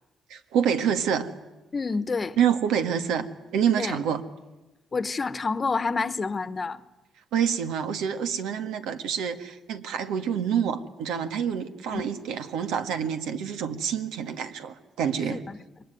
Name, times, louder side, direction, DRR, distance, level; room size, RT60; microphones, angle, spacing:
voice 1, 0.3-1.3 2.4-4.2 7.3-15.4, right 8 dB, 90° right, 1.8 m, -27 dB
voice 2, 1.7-2.4 3.8-4.0 4.9-6.8 11.9-12.0 15.3-15.6, left 4 dB, 35° left, 1.1 m, -28 dB
27.5 x 23.0 x 9.3 m
cardioid pair, 90°, 0 cm